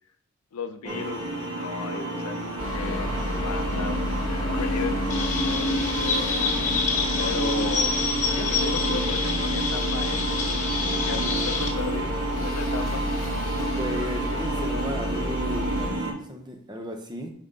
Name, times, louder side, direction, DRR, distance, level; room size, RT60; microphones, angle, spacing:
voice 1, 0.5-5.1 5.5-5.7 6.0-6.5 7.2-7.9 8.3-10.4 10.9-13.0, left 5 dB, 85° left, 0.5 m, -35 dB
sound 1, 0.8-16.1, right 1 dB, 85° right, 1.6 m, -30 dB
sound 2, 2.6-15.9, equal, 15° left, 1.1 m, -30 dB
Chirp tweet, 5.1-11.7, left 5 dB, 35° left, 1.2 m, -28 dB
voice 2, 7.4-8.0 11.1-11.5 13.8-17.3, equal, 20° right, 0.7 m, -36 dB
5.3 x 3.7 x 5.4 m
head